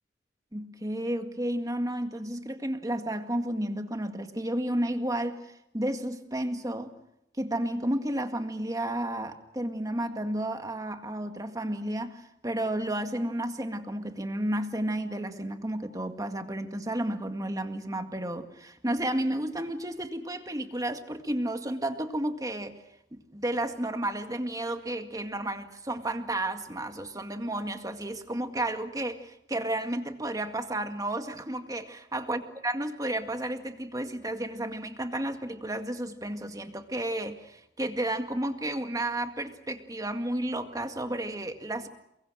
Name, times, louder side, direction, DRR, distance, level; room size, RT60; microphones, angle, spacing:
voice 1, 0.5-6.9 7.4-22.8 23.1-41.9, right 1 dB, 20° right, 6 dB, 2.0 m, -32 dB
29.0 x 23.0 x 6.4 m, 0.83 s
head